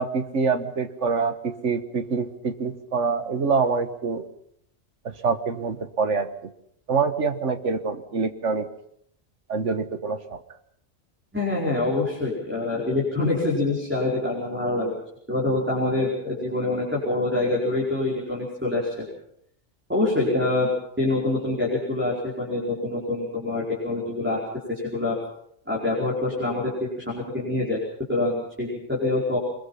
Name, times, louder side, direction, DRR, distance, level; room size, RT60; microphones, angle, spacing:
voice 1, 0.0-4.3 5.2-6.3 6.9-8.7 9.5-10.4, right 5 dB, 75° right, 9 dB, 1.7 m, -25 dB
voice 2, 11.3-15.0 15.3-19.0 19.9-20.7 21.0-24.4 24.7-25.1 25.7-27.8 28.1-29.4, left 2 dB, 10° right, -5 dB, 5.1 m, -25 dB
24.0 x 21.5 x 5.7 m, 0.72 s
omnidirectional pair, 1.2 m